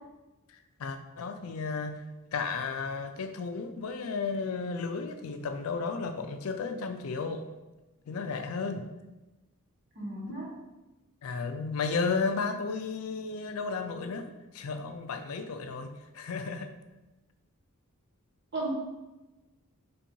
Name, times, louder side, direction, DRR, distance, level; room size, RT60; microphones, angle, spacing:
voice 1, 0.8-2.0 2.3-7.4 8.1-8.9 11.2-14.3 14.5-16.7, left 4 dB, 70° left, 7 dB, 0.4 m, -33 dB
voice 2, 9.9-10.5 18.5-18.7, right 2 dB, 55° right, -5 dB, 1.4 m, -34 dB
3.1 x 2.6 x 4.5 m, 1.1 s
head